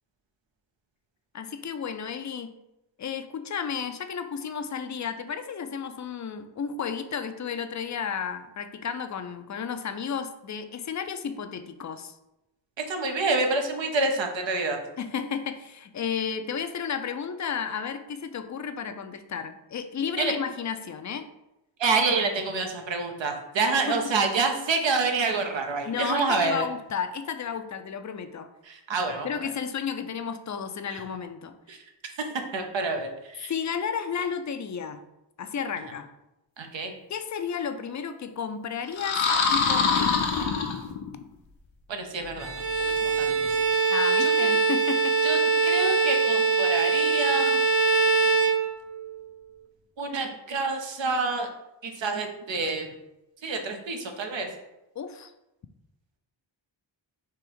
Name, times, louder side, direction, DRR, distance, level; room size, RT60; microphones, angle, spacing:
voice 1, 1.3-2.5 3.0-12.2 15.0-21.3 23.9-24.0 25.8-28.5 29.2-31.6 33.5-35.0 35.4-36.1 37.1-39.2 39.5-40.2 43.9-45.2 55.0-55.3, left 7 dB, 40° left, 9 dB, 0.4 m, -32 dB
voice 2, 12.9-14.8 20.2-20.3 21.8-26.6 28.7-29.5 30.9-31.0 31.7-31.8 32.5-33.5 36.6-36.9 41.9-42.5 42.8-43.4 44.2-44.3 45.2-47.6 48.1-48.2 50.0-51.5 51.8-53.0 53.4-54.5, right 3 dB, 75° right, 4 dB, 0.8 m, -28 dB
sound 1, 38.9-41.2, left 5 dB, 75° left, 0.7 m, -24 dB
Bowed string instrument, 42.4-49.2, right 4 dB, 30° right, 0.4 m, -23 dB
3.5 x 3.0 x 4.6 m, 0.92 s
wide cardioid pair, 75°, 46 cm